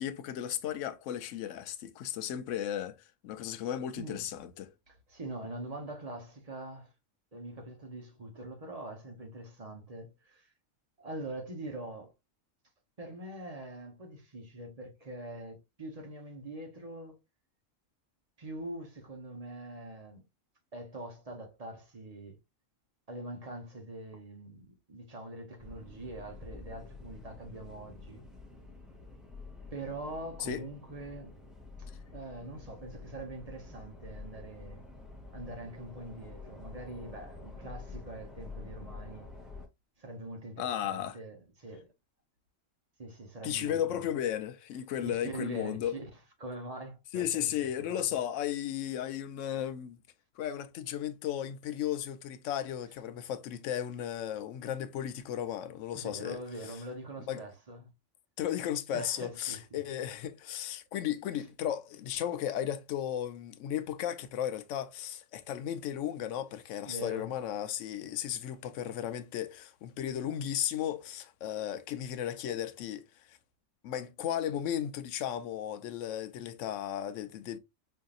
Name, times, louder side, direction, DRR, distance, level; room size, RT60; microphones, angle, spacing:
voice 1, 0.0-3.0 3.2-4.7 30.4-30.7 40.6-41.2 43.4-46.0 47.1-50.0 50.4-56.4 56.7-56.8 57.3-57.4 58.4-73.4 73.8-77.6, left 10 dB, 75° left, 0.9 m, -35 dB
voice 2, 4.0-4.3 4.9-6.9 7.3-10.5 11.0-12.1 13.0-17.2 18.4-20.2 20.7-22.4 23.1-28.2 29.7-31.4 32.1-34.8 35.3-39.3 40.0-41.9 43.0-44.0 45.0-46.1 46.4-48.1 55.9-57.9 58.9-59.8 66.8-67.3, right 1 dB, 35° right, 0.9 m, -43 dB
sound 1, 25.6-39.7, left 3 dB, ahead, 0.7 m, -48 dB
5.5 x 2.7 x 2.3 m
omnidirectional pair, 1.4 m